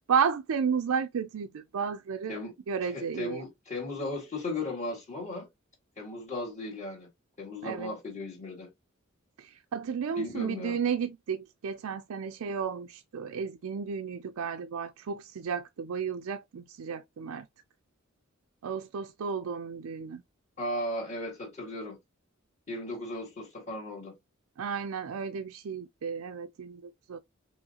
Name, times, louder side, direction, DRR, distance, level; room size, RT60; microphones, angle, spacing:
voice 1, 0.1-2.4 2.7-3.4 7.6-7.9 9.4-17.5 18.6-20.2 24.6-27.2, right 6 dB, 90° right, 0.4 m, -32 dB
voice 2, 2.8-5.5 6.0-7.1 7.4-8.7 10.1-10.8 20.6-22.0 22.7-24.1, left 1 dB, 35° left, 1.8 m, -36 dB
5.4 x 3.1 x 2.8 m
head